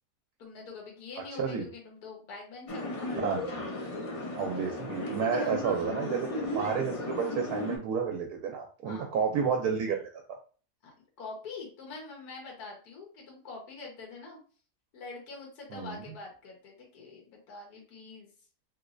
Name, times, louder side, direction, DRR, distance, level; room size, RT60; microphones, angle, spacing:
voice 1, 0.4-3.1 5.3-5.7 8.8-9.1 10.8-14.4 14.9-18.3, left 4 dB, 80° left, -1 dB, 1.5 m, -45 dB
voice 2, 1.4-1.7 3.2-3.6 4.3-10.0 15.7-16.0, right 6 dB, 80° right, 2 dB, 1.1 m, -31 dB
sound 1, 2.7-7.8, left 1 dB, 60° left, 0.3 m, -35 dB
3.2 x 3.0 x 2.5 m, 0.39 s
omnidirectional pair, 1.6 m